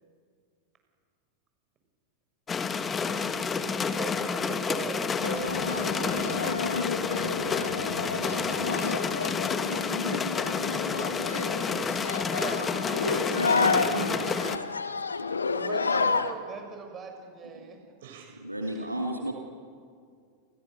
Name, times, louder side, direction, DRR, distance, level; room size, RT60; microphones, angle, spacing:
sound 1, 2.5-14.6, left 5 dB, 20° left, 1.6 m, -30 dB
voice 1, 3.9-6.5 12.3-12.7 15.5-17.8 18.7-18.9, right 5 dB, 25° right, 4 dB, 6.5 m, -40 dB
sound 2, 5.2-16.3, left 4 dB, 75° left, 1.4 m, -30 dB
voice 2, 7.6-10.6 12.0-12.4 12.8-13.3 18.0-18.3 18.6-18.7, right 8 dB, 55° right, 2 dB, 8.0 m, -51 dB
voice 3, 13.3-14.6 17.6-17.7 18.4-19.3, right 1 dB, 85° right, 2 dB, 2.5 m, -33 dB
30.0 x 29.0 x 6.9 m, 2.2 s
figure-of-eight pair, 90°, 0 cm